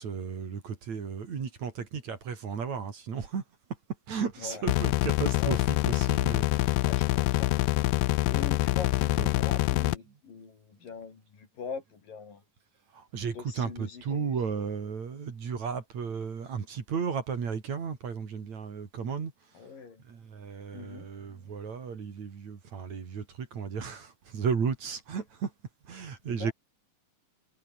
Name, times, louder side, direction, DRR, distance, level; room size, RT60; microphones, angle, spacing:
voice 1, 0.0-3.4 4.1-6.9 9.2-9.3 12.9-19.3 20.1-25.5 25.9-26.5, right 6 dB, 50° right, 4.2 m, -34 dB
sound 1, 4.7-10.0, left 18 dB, 85° left, 2.5 m, -25 dB
voice 2, 6.8-7.6 8.3-12.4 13.3-14.2 19.5-20.0 20.7-21.1 26.2-26.5, left 5 dB, 70° left, 6.2 m, -42 dB
omnidirectional pair, 4.1 m